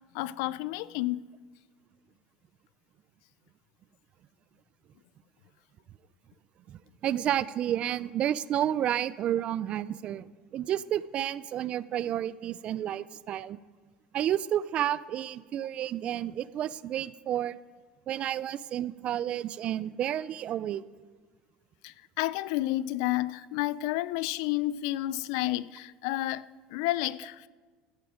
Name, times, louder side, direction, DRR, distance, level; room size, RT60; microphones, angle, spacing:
voice 1, 0.1-1.2 21.8-27.5, left 16 dB, 80° left, 0.4 m, -31 dB
voice 2, 6.7-10.3 10.5-13.6 14.1-17.6 18.1-20.8, right 11 dB, 40° right, 0.4 m, -31 dB
14.0 x 11.5 x 5.1 m
cardioid pair, 135°, 3 cm